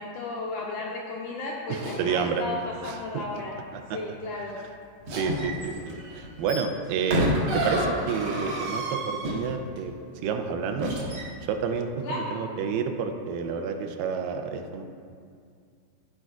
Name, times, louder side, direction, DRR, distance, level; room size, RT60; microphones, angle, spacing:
voice 1, 0.0-2.6 2.8-3.5 3.9-4.6 12.0-12.3, left 2 dB, 80° left, -2 dB, 1.8 m, -34 dB
sound 1, 1.7-2.3 5.0-9.8 10.8-11.2, equal, 70° right, 1.2 m, -29 dB
voice 2, 1.7-2.4 2.8-3.4 3.7-4.0 4.6-4.7 5.1-9.9 10.2-11.0 11.5-14.9, right 6 dB, 85° right, 5 dB, 2.3 m, -30 dB
13.5 x 4.5 x 2.4 m, 2.3 s
omnidirectional pair, 4.0 m